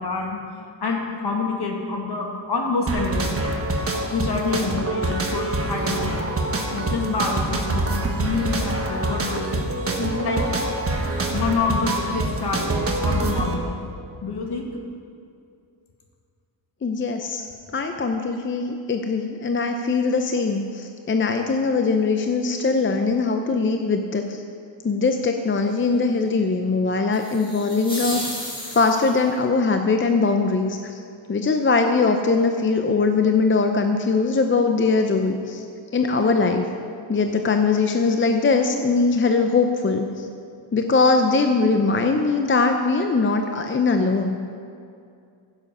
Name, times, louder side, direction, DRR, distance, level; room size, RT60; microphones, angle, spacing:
voice 1, 0.0-3.3 4.1-6.4 6.7-9.5 10.0-10.4 11.3-13.8 14.2-14.7, left 4 dB, 55° left, 1 dB, 2.0 m, -27 dB
sound 1, 2.9-13.5, right 2 dB, 30° right, 1.3 m, -25 dB
voice 2, 16.8-17.5 17.7-24.4 24.8-31.0 31.3-35.6 35.9-36.7 37.1-40.3 40.7-44.4, left 4 dB, 25° left, 5 dB, 0.5 m, -21 dB
sound 2, 27.1-29.3, equal, 10° left, 2.1 m, -33 dB
15.0 x 7.4 x 5.5 m, 2.4 s
wide cardioid pair, 140°, 46 cm